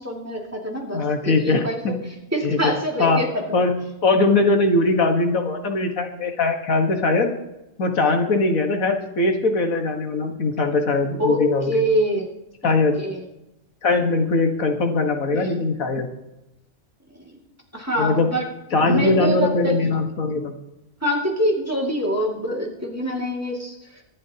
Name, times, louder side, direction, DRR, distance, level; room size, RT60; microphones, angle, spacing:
voice 1, 0.0-1.8 2.3-3.4 11.2-12.3 12.6-13.2 15.3-15.6 17.3-17.4 17.7-18.5 18.9-19.8 21.0-23.7, equal, 10° right, -2 dB, 2.3 m, -25 dB
voice 2, 0.9-2.0 2.4-2.6 3.0-3.2 3.5-3.8 4.0-7.3 7.8-11.8 12.6-13.0 13.8-16.1 18.0-18.3 18.7-20.5, left 3 dB, 90° left, 4 dB, 1.9 m, -21 dB
24.5 x 12.0 x 2.9 m, 0.92 s
omnidirectional pair, 1.4 m